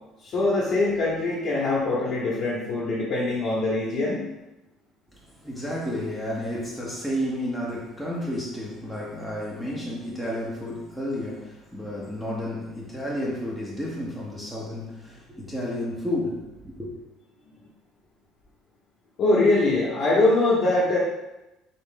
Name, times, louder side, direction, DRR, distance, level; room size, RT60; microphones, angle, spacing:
voice 1, 0.2-4.2 19.2-21.0, left 2 dB, 40° left, -6 dB, 0.8 m, -23 dB
voice 2, 5.1-16.9, left 1 dB, 5° right, -4 dB, 0.7 m, -31 dB
4.0 x 2.5 x 3.7 m, 0.97 s
cardioid pair, 135°, 0 cm